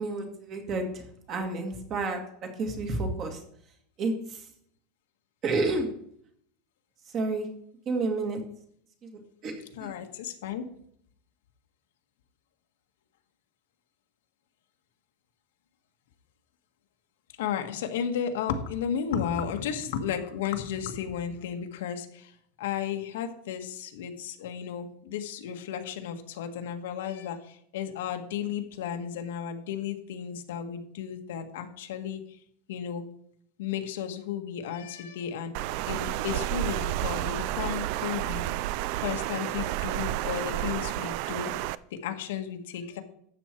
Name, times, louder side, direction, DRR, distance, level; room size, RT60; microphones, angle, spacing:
voice 1, 0.0-2.2 2.6-3.4 4.0-4.4 5.4-5.9 7.1-7.5 7.9-8.4 9.4-9.5 9.8-9.9, right 3 dB, 25° right, 4 dB, 1.9 m, -30 dB
voice 2, 9.7-10.7 17.4-22.3 22.6-32.2 32.7-33.0 33.6-35.5 35.9-38.4 39.0-41.5 41.9-43.0, left 8 dB, 80° left, 5 dB, 1.6 m, -33 dB
Water, 35.5-41.7, right 15 dB, 45° right, 0.4 m, -31 dB
12.5 x 8.2 x 4.5 m, 0.66 s
supercardioid pair, 175°, 0 cm